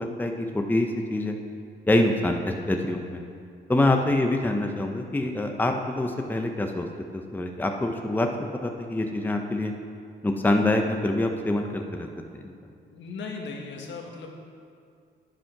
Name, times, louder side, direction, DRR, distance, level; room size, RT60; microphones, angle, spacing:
voice 1, 0.0-1.4 1.9-3.2 3.7-6.9 7.1-8.3 8.6-9.7 10.2-12.1 12.3-12.5, left 1 dB, 10° left, 3 dB, 0.8 m, -25 dB
voice 2, 12.8-14.3, left 4 dB, 70° left, 1 dB, 1.7 m, -37 dB
9.3 x 9.2 x 5.9 m, 2.4 s
cardioid pair, 90°, 20 cm